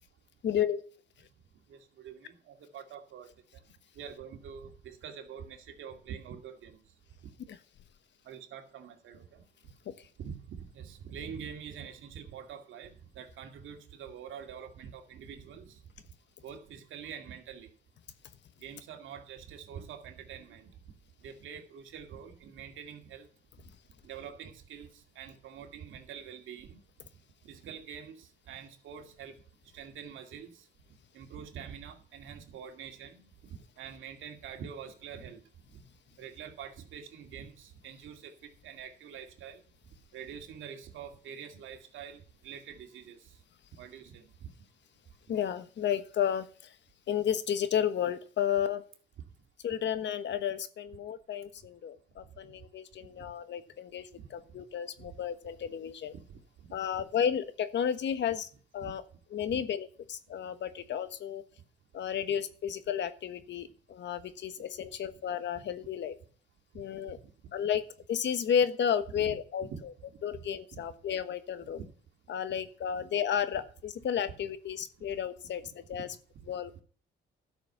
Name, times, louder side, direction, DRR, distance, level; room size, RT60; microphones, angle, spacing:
voice 1, 0.4-0.8 45.3-46.7 47.1-48.8 49.6-56.1 56.7-58.5 58.7-59.0 59.3-61.4 61.9-66.1 66.7-67.2 67.5-67.8 68.1-69.7 70.2-71.8 72.3-76.1 76.5-76.8, left 8 dB, 65° left, 11 dB, 1.3 m, -32 dB
voice 2, 1.7-3.6 4.0-6.8 8.2-9.4 10.2-15.8 16.4-17.7 18.6-20.7 21.2-23.3 24.0-26.8 27.4-29.4 29.7-30.7 31.1-33.3 33.8-35.4 36.2-39.6 40.1-43.4 43.8-44.5 54.2-54.3 55.0-55.1 56.1-56.4 56.9-57.0 58.8-58.9 59.5-59.6 65.5-65.6 67.1-67.3 69.1-69.3 69.7-69.8 70.3-70.4 70.7-70.8 71.6-71.9 72.5-72.6 76.0-76.1, right 7 dB, 80° right, 4 dB, 2.4 m, -45 dB
12.0 x 6.4 x 6.7 m, 0.43 s
cardioid pair, 90°, 20 cm